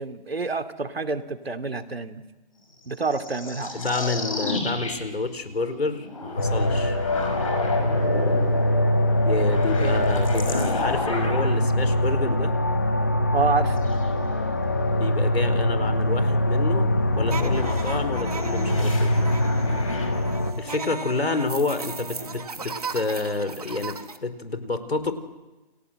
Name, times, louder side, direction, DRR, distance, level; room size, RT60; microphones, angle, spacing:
voice 1, 0.0-2.2 2.8-3.7 9.6-10.0 13.3-13.9, right 4 dB, 70° right, 8 dB, 2.7 m, -28 dB
sound 1, 2.8-11.7 13.8-14.1 17.0-20.1, left 2 dB, 35° left, 5.7 m, -33 dB
voice 2, 3.7-7.0 9.2-12.6 15.0-19.2 20.6-25.1, left 3 dB, 75° left, 10 dB, 4.5 m, -29 dB
sound 2, 6.4-20.5, left 1 dB, 15° left, 1.2 m, -23 dB
sound 3, 17.3-24.2, right 4 dB, 40° right, 1.8 m, -36 dB
29.5 x 22.5 x 7.8 m, 1.1 s
hypercardioid pair, 175°, 31 cm